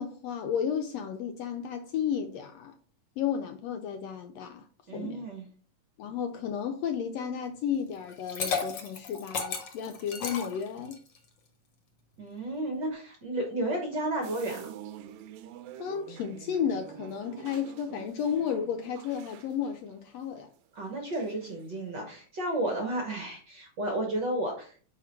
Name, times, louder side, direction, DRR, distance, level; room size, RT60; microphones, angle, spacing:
voice 1, 0.0-2.8 3.2-4.7 4.9-5.3 6.0-11.0 15.8-20.5, left 8 dB, 80° left, 1.5 m, -33 dB
voice 2, 4.9-5.4 12.2-14.7 20.7-24.8, right 1 dB, 55° right, 1.3 m, -32 dB
Liquid, 8.1-11.2, left 5 dB, 55° left, 1.4 m, -34 dB
sound 1, 14.2-20.9 21.1-21.6, right 10 dB, 80° right, 1.9 m, -47 dB
5.8 x 5.0 x 4.4 m
omnidirectional pair, 3.4 m